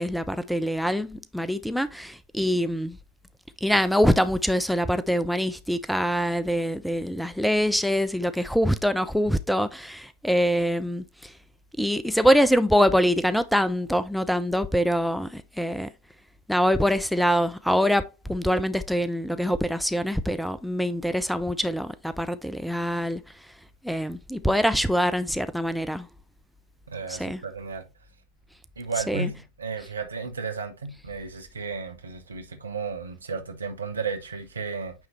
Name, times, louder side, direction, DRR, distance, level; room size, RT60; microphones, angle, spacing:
voice 1, 0.0-3.0 3.6-11.3 11.8-15.9 16.5-23.5 23.8-26.1 27.1-27.4 28.9-29.3 29.8-29.9, equal, ahead, 0.4 m, -24 dB
voice 2, 26.9-27.9 28.8-34.9, right 4 dB, 75° right, 1.2 m, -33 dB
9.2 x 3.2 x 3.2 m
figure-of-eight pair, 90°, 0 cm